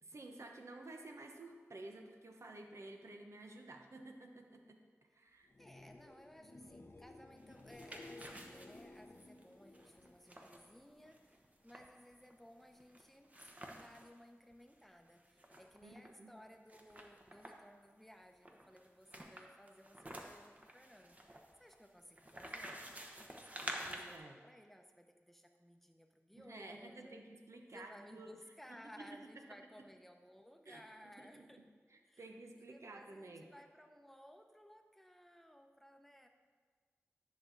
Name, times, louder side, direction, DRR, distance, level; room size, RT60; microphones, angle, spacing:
voice 1, 0.0-4.8 5.1-5.5 15.8-16.3 23.9-24.4 26.3-28.4 29.0-29.5 30.7-31.6 31.9-33.5, right 2 dB, 70° right, 3 dB, 0.9 m, -53 dB
sound 1, 5.4-11.2 11.6-12.1 19.2-19.3, left 2 dB, 50° left, 0.6 m, -57 dB
voice 2, 5.6-21.2 21.6-22.8 23.2-27.2 27.7-31.6 32.1-32.3 32.6-36.3, equal, 5° left, 4 dB, 0.8 m, -59 dB
sound 2, 7.4-14.1 14.5-14.6 14.8-16.1 16.7-17.7 18.4-24.2, right 1 dB, 30° right, 1.0 m, -50 dB
10.5 x 6.2 x 4.0 m, 1.5 s
wide cardioid pair, 50°, 5 cm